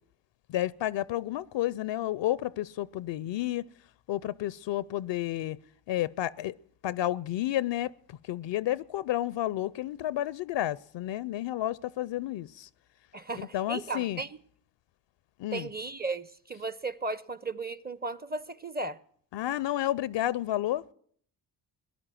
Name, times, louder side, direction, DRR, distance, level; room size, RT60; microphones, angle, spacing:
voice 1, 0.5-3.6 4.1-5.6 5.9-6.5 6.8-7.9 8.3-12.7 13.3-14.2 15.4-15.7 19.3-20.8, left 13 dB, 60° left, 0.5 m, -31 dB
voice 2, 13.1-14.4 15.5-19.0, right 3 dB, 20° right, 0.6 m, -35 dB
17.5 x 11.0 x 7.5 m
supercardioid pair, 50°, 49 cm